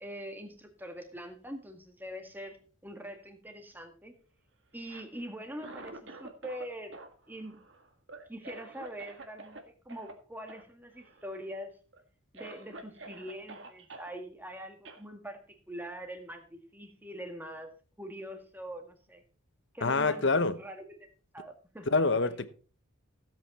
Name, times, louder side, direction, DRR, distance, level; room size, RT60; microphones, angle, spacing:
voice 1, 0.0-2.6 2.8-4.2 4.7-7.0 7.3-7.6 8.3-11.7 12.3-17.7 18.0-19.2 19.7-20.3 20.6-21.1 21.3-21.9, equal, 10° right, 1.8 m, -43 dB
Cough, 4.7-6.7 6.9-9.6 9.9-10.1 10.5-10.6 10.9-11.5 11.9-12.0 12.3-14.1 14.8-15.0, right 2 dB, 60° right, 1.8 m, -48 dB
voice 2, 19.8-20.6 21.9-22.5, left 3 dB, 55° left, 1.0 m, -26 dB
16.0 x 8.3 x 4.2 m
head